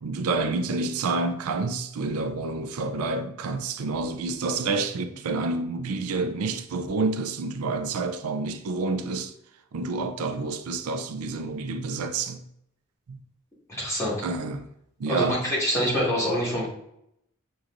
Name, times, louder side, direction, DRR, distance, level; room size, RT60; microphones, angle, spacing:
voice 1, 0.0-9.3 9.7-12.4 13.1-13.2 14.2-14.7 15.0-15.5, right 3 dB, 85° right, 0.4 m, -28 dB
voice 2, 13.7-14.2 15.1-16.7, equal, 15° left, 1.7 m, -25 dB
6.5 x 3.0 x 2.5 m
head